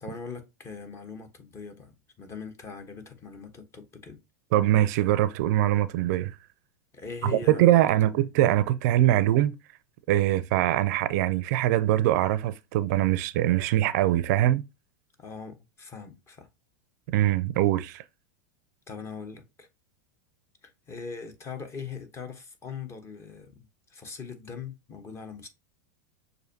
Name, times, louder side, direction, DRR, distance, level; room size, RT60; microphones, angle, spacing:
voice 1, 0.0-4.2 6.9-7.8 15.2-16.5 18.9-19.7 20.6-25.5, left 5 dB, 30° left, 1.1 m, -41 dB
voice 2, 4.5-6.4 7.2-9.5 10.1-14.6 17.1-18.0, right 13 dB, 65° right, 0.4 m, -23 dB
6.3 x 2.6 x 2.7 m
hypercardioid pair, 115°, 10 cm